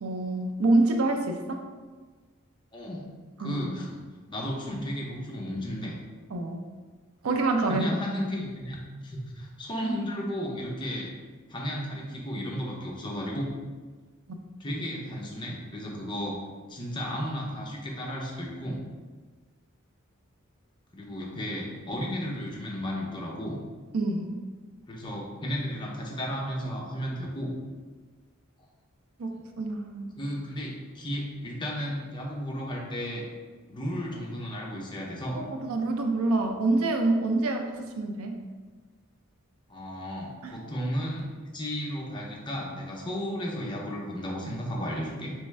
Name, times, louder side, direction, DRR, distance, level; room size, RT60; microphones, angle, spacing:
voice 1, 0.0-1.6 3.4-3.7 6.3-6.6 7.2-7.9 14.3-14.4 23.9-24.4 29.2-29.3 29.6-30.2 35.4-38.4 40.4-40.6, right 2 dB, 80° right, 4 dB, 0.5 m, -26 dB
voice 2, 2.7-3.1 3.4-4.0 4.3-6.0 7.7-8.8 9.0-11.1 11.5-13.5 14.6-16.4 16.7-18.8 20.9-23.6 24.9-27.5 30.2-33.3 33.7-35.4 39.7-45.3, equal, 20° left, -2 dB, 0.6 m, -34 dB
3.4 x 3.4 x 3.2 m, 1.4 s
head